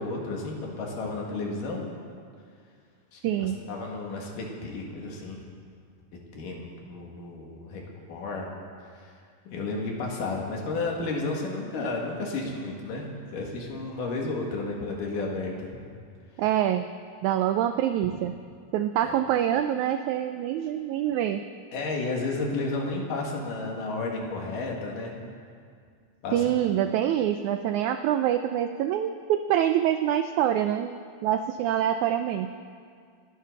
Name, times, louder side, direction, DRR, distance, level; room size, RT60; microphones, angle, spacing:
voice 1, 0.0-1.8 3.1-5.4 6.3-7.8 8.1-8.5 8.9-9.1 9.5-13.1 13.3-15.7 19.0-19.1 21.7-25.1 26.2-26.4, left 3 dB, 70° left, -1 dB, 3.5 m, -32 dB
voice 2, 3.2-3.6 16.4-16.9 17.2-18.3 18.7-21.4 26.3-30.9 31.2-32.5, right 11 dB, 85° right, 9 dB, 1.7 m, -25 dB
29.5 x 10.5 x 4.0 m, 2.2 s
omnidirectional pair, 4.0 m